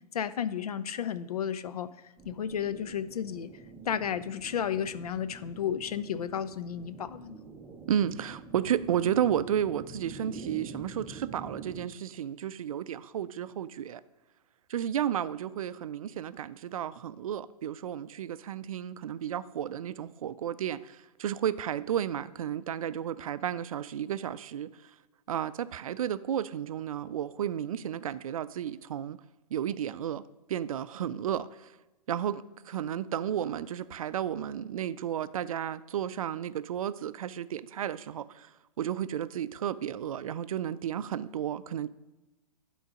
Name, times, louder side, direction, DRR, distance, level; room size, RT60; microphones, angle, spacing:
voice 1, 0.1-1.9 2.3-3.5 3.9-7.4, left 8 dB, 65° left, 14 dB, 0.5 m, -33 dB
sound 1, 2.2-11.9, right 4 dB, 10° right, 0.6 m, -46 dB
voice 2, 7.9-14.0 14.7-24.9 25.3-29.2 29.5-31.7 32.1-38.5 38.8-41.9, right 9 dB, 55° right, 15 dB, 0.4 m, -32 dB
11.5 x 3.9 x 5.1 m, 1.0 s
figure-of-eight pair, 110°, 21 cm